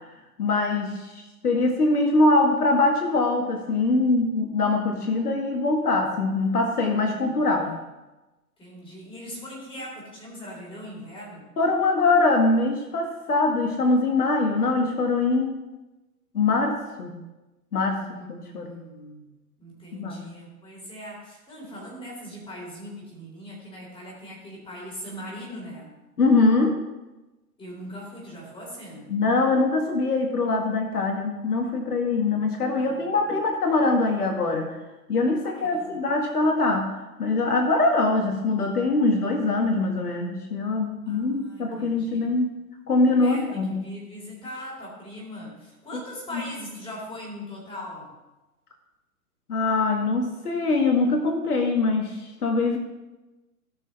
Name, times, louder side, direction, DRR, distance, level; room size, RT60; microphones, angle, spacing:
voice 1, 0.4-7.7 11.6-15.6 16.3-17.1 17.7-18.0 18.3-18.7 19.9-20.2 26.2-26.8 29.1-34.7 35.1-42.6 42.9-43.8 46.3-46.4 49.5-52.8, left 3 dB, 75° left, 2 dB, 1.9 m, -23 dB
voice 2, 7.1-7.8 8.6-11.4 17.9-19.3 19.6-25.9 27.6-29.1 32.8-33.2 35.4-36.0 41.1-42.4 43.2-48.1, equal, 10° left, -3 dB, 4.2 m, -40 dB
18.0 x 6.3 x 3.4 m, 1.1 s
figure-of-eight pair, 125°, 46 cm